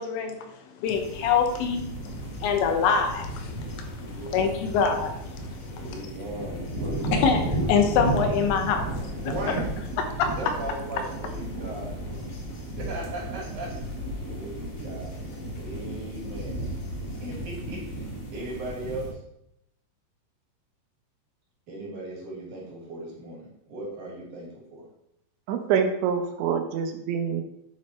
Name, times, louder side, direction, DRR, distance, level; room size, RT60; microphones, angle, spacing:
voice 1, 0.0-6.1 7.1-9.6 10.0-10.3, left 6 dB, 80° left, 5 dB, 3.3 m, -26 dB
sound 1, 0.9-19.1, right 1 dB, 50° left, 1.7 m, -34 dB
voice 2, 4.0-4.5 5.7-7.3 9.2-9.6 10.4-12.0 12.3-12.4 12.8-13.7 14.3-15.2 15.5-16.7 17.2-19.1 21.7-24.9, right 2 dB, 45° right, -5 dB, 4.3 m, -37 dB
voice 3, 25.5-27.4, right 7 dB, 85° right, 6 dB, 3.4 m, -26 dB
10.0 x 6.3 x 4.5 m, 0.80 s
omnidirectional pair, 5.3 m